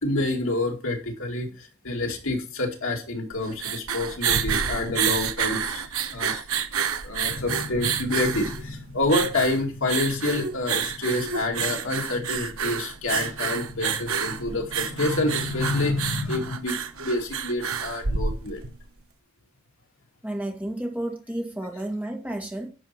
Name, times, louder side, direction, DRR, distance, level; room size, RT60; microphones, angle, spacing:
voice 1, 0.0-6.4 7.0-18.6, left 2 dB, 60° left, 1 dB, 2.4 m, -28 dB
sound 1, 3.3-18.8, right 7 dB, 70° right, 1.0 m, -29 dB
voice 2, 20.2-22.7, right 1 dB, 5° right, 1 dB, 1.8 m, -31 dB
11.0 x 4.8 x 5.9 m, 0.35 s
head